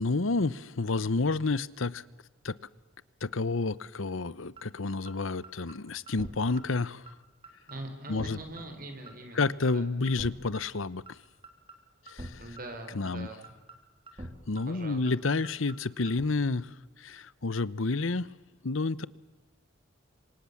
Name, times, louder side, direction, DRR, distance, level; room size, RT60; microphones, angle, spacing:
voice 1, 0.0-2.0 2.4-2.6 3.2-7.1 8.1-8.4 9.3-11.2 12.1-12.4 12.9-13.3 14.5-18.3 18.6-19.1, left 3 dB, 80° left, 19 dB, 0.9 m, -30 dB
sound 1, 4.6-4.7 5.1-5.2 5.4-5.7 6.1-6.3 6.6-6.7 7.1-7.2 7.4-7.7 8.1-8.3 8.6-8.7 9.1-9.2 9.4-9.7 10.1-10.3 10.6-10.7 11.1-11.2 11.4-11.7 12.1-12.3 12.6-12.7 13.1-13.2 13.4-13.7 14.1-14.3 14.6-14.7 15.1-15.2 15.4-15.7 16.1-16.2, right 1 dB, 25° right, 3.4 m, -43 dB
voice 2, 7.7-9.9 12.4-13.5 14.7-15.1, right 1 dB, 45° right, 6 dB, 5.3 m, -43 dB
28.0 x 25.0 x 7.3 m, 1.1 s
head